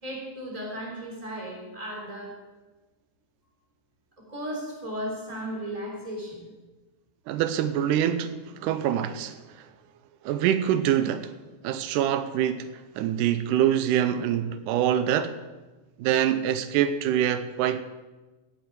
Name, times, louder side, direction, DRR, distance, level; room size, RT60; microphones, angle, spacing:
voice 1, 0.0-2.4 4.2-6.5, equal, 10° right, 2.9 m, -35 dB
voice 2, 7.3-9.7 10.2-11.3 11.6-15.4 16.0-17.8, right 10 dB, 90° right, 2.1 m, -25 dB
17.0 x 8.0 x 4.6 m
omnidirectional pair, 3.6 m